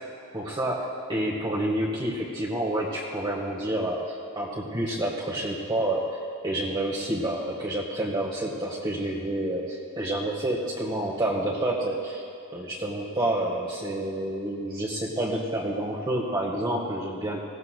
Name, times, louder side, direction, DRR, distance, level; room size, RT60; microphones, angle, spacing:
voice 1, 0.3-6.2 6.4-12.2 12.5-17.4, right 1 dB, 20° right, -4 dB, 1.3 m, -29 dB
20.5 x 16.0 x 2.2 m, 2.7 s
head